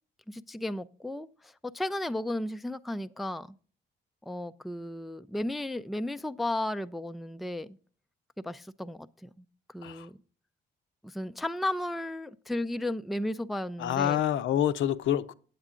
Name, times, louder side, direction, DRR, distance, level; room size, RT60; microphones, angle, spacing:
voice 1, 0.3-3.6 4.2-7.8 8.4-10.1 11.0-14.2, left 1 dB, ahead, 0.3 m, -34 dB
voice 2, 13.8-15.3, left 10 dB, 75° left, 0.6 m, -27 dB
8.7 x 8.1 x 3.7 m
cardioid pair, 90°, 20 cm